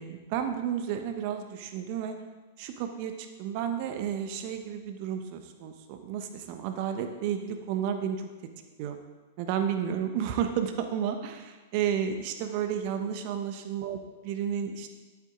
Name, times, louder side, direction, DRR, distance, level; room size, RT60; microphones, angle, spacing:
voice 1, 0.0-2.2 2.6-3.1 3.4-8.3 8.8-9.0 9.4-14.0 14.2-15.0, right 8 dB, 45° right, 7 dB, 1.1 m, -32 dB
11.5 x 8.4 x 3.8 m, 1.2 s
figure-of-eight pair, 100°, 0 cm